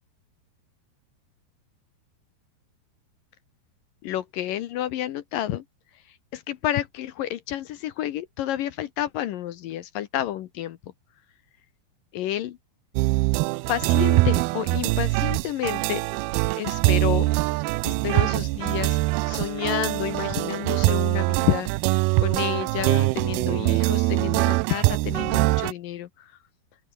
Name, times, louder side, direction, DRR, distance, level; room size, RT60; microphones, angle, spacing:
voice 1, 4.0-5.6 6.3-10.8 12.1-12.6 13.7-16.1 16.6-17.3 17.8-19.0 19.3-26.3, left 12 dB, 70° left, 2.2 m, -30 dB
sound 1, 13.0-25.7, right 22 dB, 85° right, 2.2 m, -23 dB
open air
omnidirectional pair, 5.0 m